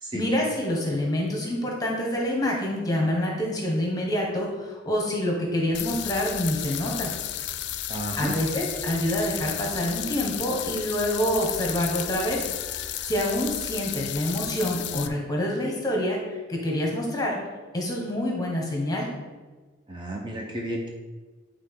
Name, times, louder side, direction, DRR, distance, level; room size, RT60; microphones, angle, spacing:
voice 1, 0.1-7.1 8.2-12.5 13.1-17.4 17.7-19.1, left 1 dB, 20° left, -1 dB, 1.2 m, -27 dB
sound 1, 5.7-15.1, left 11 dB, 65° left, 0.4 m, -33 dB
voice 2, 7.9-8.4 19.9-20.9, right 1 dB, 25° right, 0 dB, 0.6 m, -32 dB
8.7 x 3.8 x 3.7 m, 1.3 s
head